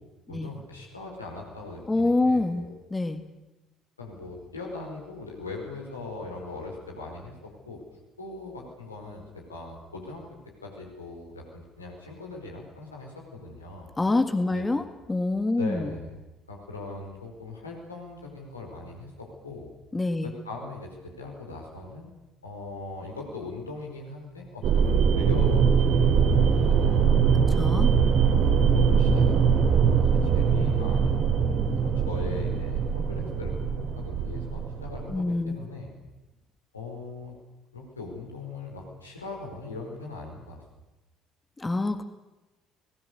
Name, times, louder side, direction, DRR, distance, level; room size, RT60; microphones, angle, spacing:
voice 1, 0.3-2.7 4.0-7.8 8.2-13.9 14.5-14.6 15.6-16.2 16.5-19.7 20.2-22.2 22.4-27.6 28.7-33.5 33.9-35.9 36.7-37.3 37.7-40.6, left 3 dB, 85° left, -1 dB, 4.8 m, -40 dB
voice 2, 1.9-2.6 2.9-3.2 14.0-15.9 19.9-20.3 27.3-27.9 35.1-35.6 41.6-42.0, left 2 dB, 15° left, 9 dB, 1.9 m, -26 dB
sound 1, 24.6-35.2, right 6 dB, 50° right, 2.7 m, -22 dB
27.0 x 20.0 x 6.9 m, 1.1 s
figure-of-eight pair, 55°, 0 cm